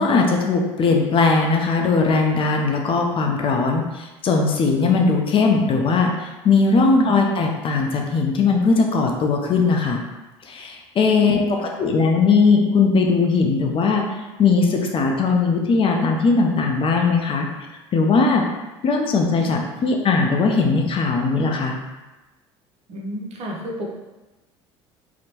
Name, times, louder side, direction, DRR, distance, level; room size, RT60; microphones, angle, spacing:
voice 1, 0.0-10.0 10.4-17.5 17.9-18.4 18.8-21.7, left 4 dB, 40° left, 1 dB, 0.5 m, -19 dB
voice 2, 6.8-7.2 11.1-11.5 22.9-23.9, equal, 50° right, -1 dB, 0.7 m, -32 dB
2.9 x 2.0 x 2.8 m, 1.1 s
hypercardioid pair, 70°, 14 cm